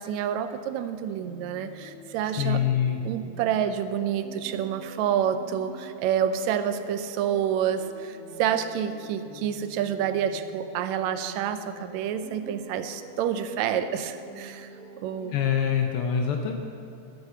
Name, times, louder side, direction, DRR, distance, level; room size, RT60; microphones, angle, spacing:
voice 1, 0.0-2.6 3.0-14.7 15.0-15.4, right 9 dB, 80° right, 10 dB, 1.8 m, -28 dB
sound 1, 1.2-15.4, right 1 dB, 30° left, 3.5 m, -48 dB
voice 2, 2.4-3.0 15.3-16.6, left 8 dB, 85° left, 3 dB, 1.2 m, -25 dB
sound 2, 5.4-15.4, left 3 dB, 60° left, 1.9 m, -52 dB
12.0 x 7.9 x 6.8 m, 2.5 s
omnidirectional pair, 3.3 m